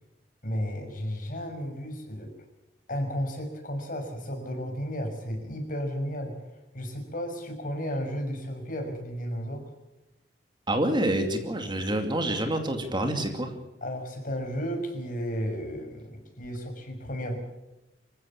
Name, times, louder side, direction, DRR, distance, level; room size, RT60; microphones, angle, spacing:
voice 1, 0.4-2.3 2.9-6.4 6.7-9.6 13.8-17.4, equal, 50° left, 4 dB, 5.9 m, -33 dB
voice 2, 10.7-13.5, right 1 dB, 25° right, 6 dB, 2.5 m, -27 dB
26.0 x 15.5 x 7.3 m, 0.94 s
head